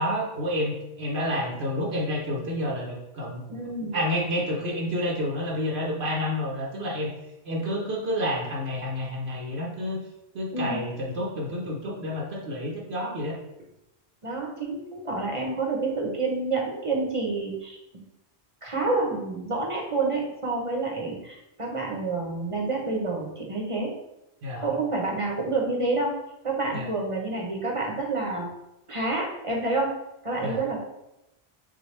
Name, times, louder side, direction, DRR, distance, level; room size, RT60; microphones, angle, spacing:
voice 1, 0.0-3.4 3.9-7.1 7.4-10.0 10.3-13.4 24.4-24.7 26.7-26.9 30.4-30.6, equal, 80° right, -3 dB, 1.2 m, -29 dB
voice 2, 3.5-4.0 10.5-10.8 14.2-17.8 18.6-23.9 24.6-26.1 26.4-28.5 28.9-29.9 30.2-30.8, right 3 dB, 35° right, -1 dB, 0.8 m, -28 dB
6.2 x 2.3 x 3.2 m, 0.88 s
omnidirectional pair, 1.1 m